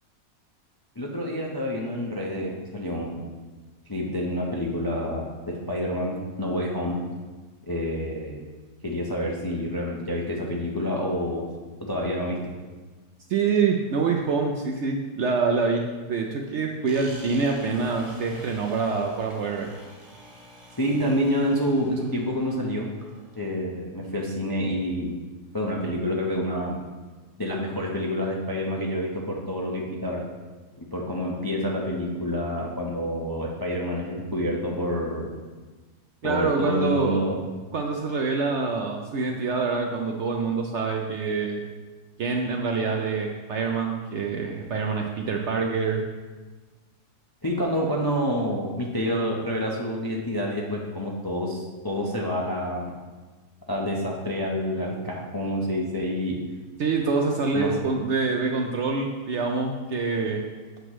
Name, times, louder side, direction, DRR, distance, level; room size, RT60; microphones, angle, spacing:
voice 1, 1.0-3.3 3.9-7.0 7.7-8.4 8.8-11.4 11.8-12.4 20.8-22.9 23.3-25.1 25.5-26.8 27.4-30.2 30.8-35.3 36.2-37.4 47.4-52.9 53.7-56.4 57.5-57.7, equal, 30° left, -2 dB, 0.4 m, -28 dB
voice 2, 13.3-15.8 16.1-19.7 36.2-37.2 37.7-41.6 42.2-46.0 56.8-60.4, right 4 dB, 65° right, 2 dB, 0.7 m, -26 dB
sound 1, 16.9-23.5, equal, 50° right, 1.4 m, -48 dB
7.9 x 3.0 x 6.2 m, 1.3 s
omnidirectional pair, 1.6 m